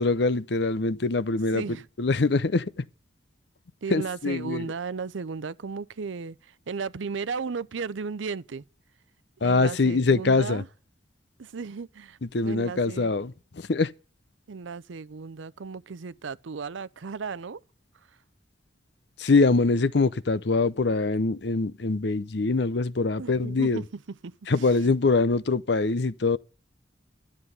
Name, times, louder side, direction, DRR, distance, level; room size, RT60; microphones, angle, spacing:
voice 1, 0.0-2.7 3.9-4.7 9.4-10.6 12.2-13.9 19.2-23.8 24.5-26.4, left 3 dB, 60° left, 0.7 m, -24 dB
voice 2, 1.5-1.9 3.8-6.4 6.7-8.6 9.4-10.7 11.4-12.2 12.4-13.1 14.5-17.6 23.2-23.9 24.2-24.3, right 5 dB, 85° right, 0.6 m, -35 dB
12.0 x 7.5 x 7.9 m
head